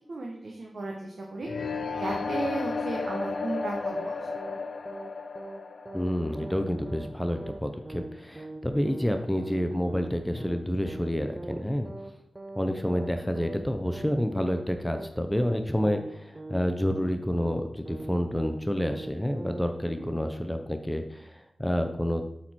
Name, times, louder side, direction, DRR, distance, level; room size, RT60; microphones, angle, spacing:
voice 1, 0.1-1.5 1.9-4.3 19.8-20.2, right 2 dB, 65° right, -1 dB, 1.1 m, -35 dB
sound 1, 1.4-7.3, left 4 dB, 65° left, 0.4 m, -34 dB
sound 2, 3.9-4.1 4.4-4.6 4.9-5.1 5.4-5.6 5.9-6.1 6.4-6.6 6.9-7.1 7.4-7.6 7.9-8.1 8.4-8.6 8.9-9.1 9.4-9.6 9.9-10.1 10.4-10.6 10.9-11.1 11.4-11.6 11.9-12.1 12.4-12.6 12.9-13.1 13.4-13.6 13.9-14.1 14.4-14.6 14.9-15.1 15.4-15.6 15.9-16.1 16.4-16.6 16.9-17.1 17.4-17.6 17.9-18.1 18.4-18.6 18.9-19.1 19.4-19.6, right 2 dB, 35° right, 0.9 m, -41 dB
voice 2, 5.9-11.9 12.6-22.2, equal, 5° left, 6 dB, 0.7 m, -29 dB
7.5 x 4.3 x 4.4 m, 0.79 s
cardioid pair, 50°, 0 cm